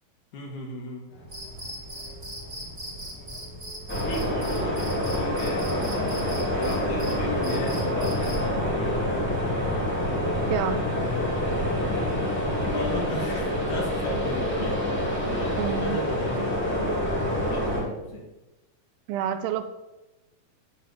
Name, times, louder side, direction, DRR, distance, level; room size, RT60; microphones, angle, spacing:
voice 1, 0.3-1.1 4.0-9.0 12.6-14.8 15.2-18.2, left 1 dB, 60° left, 0 dB, 2.8 m, -35 dB
sound 1, 1.1-12.8, left 3 dB, 85° left, 4.5 m, -38 dB
Cricket, 1.3-8.5, right 1 dB, 20° right, 1.9 m, -40 dB
sound 2, 3.9-17.8, equal, 5° left, 2.1 m, -27 dB
voice 2, 10.5-10.9 15.6-16.0 19.1-19.6, right 9 dB, 85° right, 10 dB, 2.5 m, -28 dB
10.0 x 4.1 x 6.7 m, 1.0 s
omnidirectional pair, 4.3 m